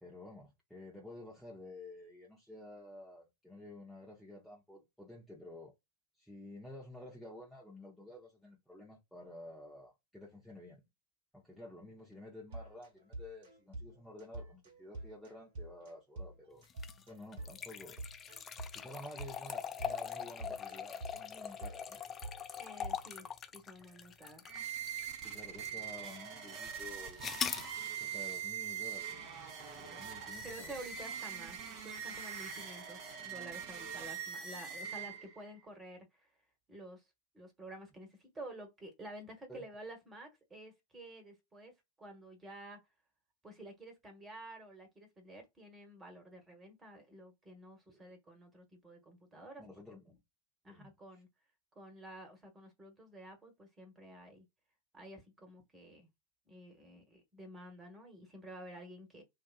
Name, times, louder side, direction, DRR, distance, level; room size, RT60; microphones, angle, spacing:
voice 1, 0.0-5.7 6.2-10.9 11.3-16.6 17.1-18.0 18.7-22.0 25.2-27.3 27.9-29.4 29.7-30.7 39.5-39.6 47.9-48.0 49.6-50.2 50.6-50.9, left 1 dB, ahead, 0.9 m, -51 dB
sound 1, 12.5-23.3, right 2 dB, 55° right, 1.3 m, -48 dB
sound 2, 16.7-25.1 25.7-25.8 27.2-27.7, left 7 dB, 25° left, 0.3 m, -42 dB
voice 2, 22.6-24.4 30.2-36.3 36.7-37.0 37.3-42.8 43.4-49.6 50.6-51.3 51.7-54.4 54.9-56.1 56.5-59.2, right 1 dB, 15° right, 1.3 m, -51 dB
sound 3, 24.4-35.5, right 8 dB, 35° right, 0.8 m, -43 dB
2.6 x 2.4 x 2.4 m
figure-of-eight pair, 90°, 0 cm